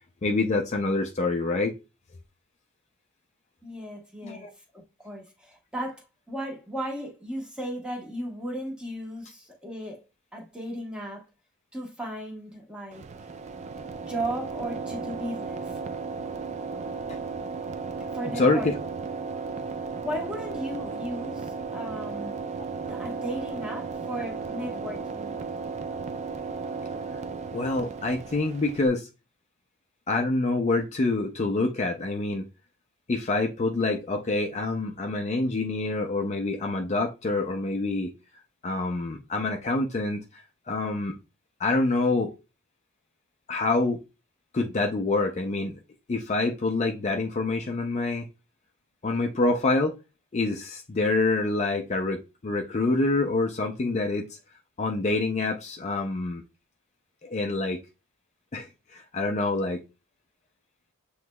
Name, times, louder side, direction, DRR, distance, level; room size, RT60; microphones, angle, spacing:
voice 1, 0.2-1.7 4.2-4.5 17.1-17.2 18.4-18.7 27.5-29.1 30.1-32.5 33.1-38.1 38.6-41.2 41.6-42.3 43.5-44.0 44.5-45.8 46.1-48.3 49.0-49.9 50.3-54.2 54.8-56.4 57.2-57.8 58.5-58.7 58.9-59.8, left 3 dB, 30° left, 0.5 m, -26 dB
voice 2, 3.6-4.5 4.7-10.0 10.3-11.2 11.7-13.1 14.0-15.8 18.0-18.7 20.0-22.3 22.9-25.4, right 1 dB, 5° right, 1.2 m, -35 dB
sound 1, 12.9-28.9, right 4 dB, 30° right, 0.3 m, -35 dB
7.6 x 3.1 x 2.2 m
head